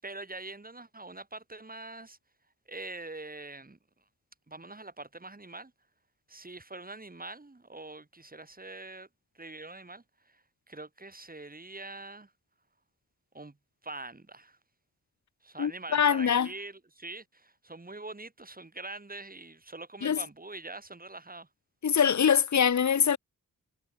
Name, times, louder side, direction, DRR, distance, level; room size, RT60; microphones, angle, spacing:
voice 1, 0.0-2.2 2.7-3.8 4.5-5.7 6.3-9.1 9.3-12.3 13.3-13.6 13.8-14.6 15.4-21.5, right 2 dB, 25° right, 6.0 m, -44 dB
voice 2, 15.6-16.5 20.0-20.2 21.8-23.2, left 7 dB, 60° left, 1.0 m, -24 dB
wide cardioid pair, 115°, 33 cm